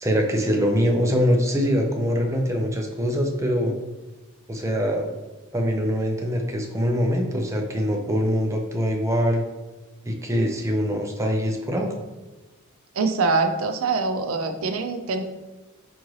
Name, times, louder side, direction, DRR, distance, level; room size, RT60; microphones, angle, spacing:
voice 1, 0.0-3.8 4.5-5.2 5.5-9.4 10.0-11.9, equal, 15° right, 2 dB, 0.5 m, -23 dB
voice 2, 13.0-15.2, right 4 dB, 75° right, 8 dB, 0.4 m, -24 dB
4.6 x 2.6 x 3.1 m, 1.1 s
head